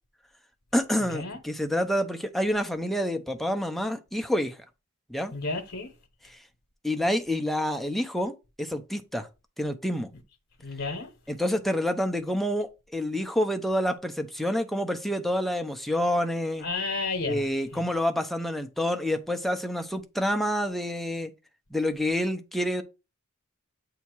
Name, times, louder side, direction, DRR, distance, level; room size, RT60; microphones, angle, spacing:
voice 1, 0.7-4.6 5.1-5.3 6.2-6.4 6.8-9.3 9.6-10.1 11.3-16.7 17.2-21.3 21.7-22.8, left 1 dB, ahead, 0.6 m, -28 dB
voice 2, 5.3-5.9 10.6-11.1 16.6-17.4, left 3 dB, 60° left, 1.0 m, -31 dB
8.2 x 2.8 x 4.5 m
head